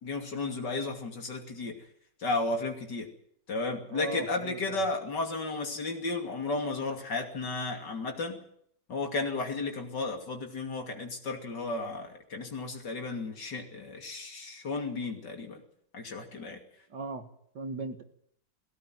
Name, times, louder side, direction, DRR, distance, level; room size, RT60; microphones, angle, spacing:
voice 1, 0.0-1.8 2.2-3.1 3.5-8.4 8.9-15.6 15.9-16.6, left 3 dB, 60° left, 3 dB, 3.3 m, -33 dB
voice 2, 3.9-4.8 16.9-17.3 17.5-18.0, right 3 dB, 60° right, 7 dB, 2.3 m, -38 dB
19.5 x 16.5 x 9.3 m, 0.68 s
omnidirectional pair, 2.1 m